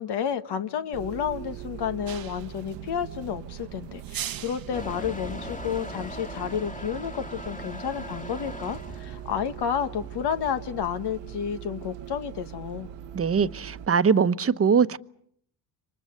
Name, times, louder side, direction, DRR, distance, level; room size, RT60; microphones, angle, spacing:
voice 1, 0.0-12.9, left 8 dB, 65° left, 1.5 m, -31 dB
Bus, 0.9-13.9, right 10 dB, 75° right, 1.1 m, -41 dB
sound 1, 2.1-2.6 4.0-4.8, right 11 dB, 55° right, 1.0 m, -37 dB
Motor vehicle (road) / Engine starting / Accelerating revving vroom, 4.7-10.6, left 1 dB, 20° left, 2.0 m, -41 dB
voice 2, 13.1-15.0, right 6 dB, 30° right, 1.1 m, -22 dB
28.0 x 24.5 x 6.7 m
supercardioid pair, 70°, 43 cm